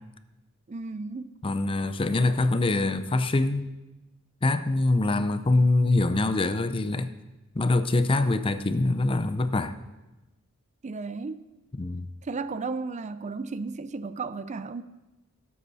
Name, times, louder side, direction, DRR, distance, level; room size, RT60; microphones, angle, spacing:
voice 1, 0.7-1.3 10.8-11.4 12.2-14.8, right 4 dB, 35° right, 0.4 m, -34 dB
voice 2, 1.4-3.7 4.4-7.1 7.5-9.8 11.8-12.1, left 2 dB, 25° left, 0.5 m, -24 dB
17.5 x 8.5 x 4.1 m
head